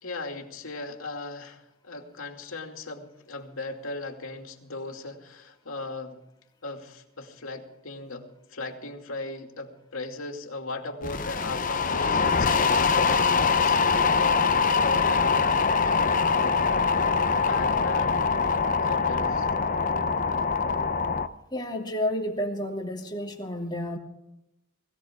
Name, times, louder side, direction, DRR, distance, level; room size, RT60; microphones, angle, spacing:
voice 1, 0.0-6.2 6.6-14.5 14.8-15.5 15.8-16.6 17.5-18.4 18.8-19.5, left 2 dB, 80° left, 3 dB, 2.6 m, -38 dB
sound 1, 11.0-21.3, left 5 dB, 40° left, 0.7 m, -23 dB
voice 2, 21.5-24.0, left 1 dB, 20° left, -1 dB, 2.7 m, -30 dB
21.0 x 16.5 x 3.7 m, 0.88 s
head